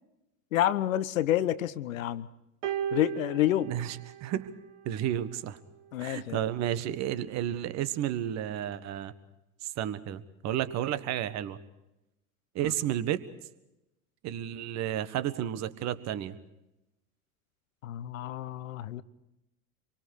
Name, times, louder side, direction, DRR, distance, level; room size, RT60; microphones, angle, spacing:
voice 1, 0.5-2.3 2.9-3.7 5.9-6.4 12.6-12.7 17.8-19.0, left 13 dB, 60° left, 16 dB, 1.1 m, -28 dB
sound 1, 2.6-5.1 6.1-6.3, right 9 dB, 55° right, 1.7 m, -37 dB
voice 2, 3.6-4.5 4.8-5.6 6.0-9.1 9.6-11.6 12.5-13.2 14.2-16.4, right 11 dB, 35° right, 14 dB, 1.4 m, -32 dB
27.0 x 23.5 x 4.8 m, 0.91 s
figure-of-eight pair, 80°, 45 cm